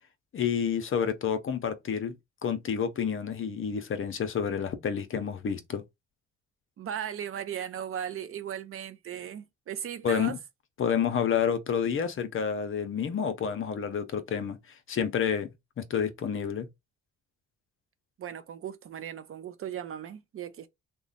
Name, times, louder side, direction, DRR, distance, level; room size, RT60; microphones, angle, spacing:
voice 1, 0.3-2.1 2.4-5.8 10.0-10.4 10.8-14.6 14.9-15.5 15.8-16.7, left 7 dB, 45° left, 0.6 m, -29 dB
voice 2, 6.8-10.4 18.2-20.7, right 9 dB, 45° right, 0.5 m, -37 dB
3.0 x 2.2 x 3.9 m
cardioid pair, 90°, 30 cm